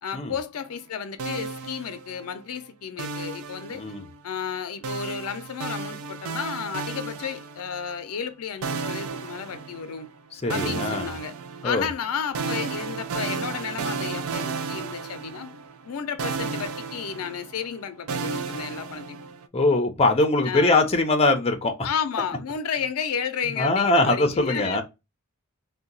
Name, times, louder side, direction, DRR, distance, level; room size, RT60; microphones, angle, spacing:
voice 1, 0.0-3.8 4.2-10.1 10.5-11.3 11.6-15.5 15.8-19.2 20.5-20.8 21.8-24.8, left 7 dB, 85° left, 0.5 m, -32 dB
sound 1, 1.2-2.4 3.0-4.2 4.8-7.9 8.6-10.1 10.5-19.5, right 5 dB, 70° right, 0.4 m, -33 dB
voice 2, 10.4-11.1 11.6-11.9 19.5-21.7 23.5-24.8, left 2 dB, 30° left, 0.5 m, -22 dB
2.7 x 2.2 x 3.8 m
head